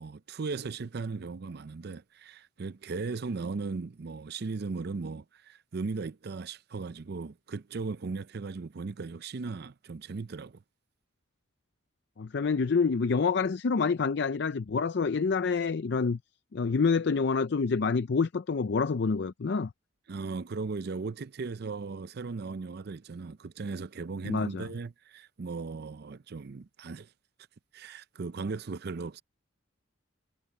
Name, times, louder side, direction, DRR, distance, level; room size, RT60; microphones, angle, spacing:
voice 1, 0.0-10.6 20.1-27.1 27.7-29.2, right 4 dB, 55° right, 0.5 m, -37 dB
voice 2, 12.2-16.2 16.5-19.7 24.3-24.7, left 5 dB, 55° left, 0.5 m, -27 dB
head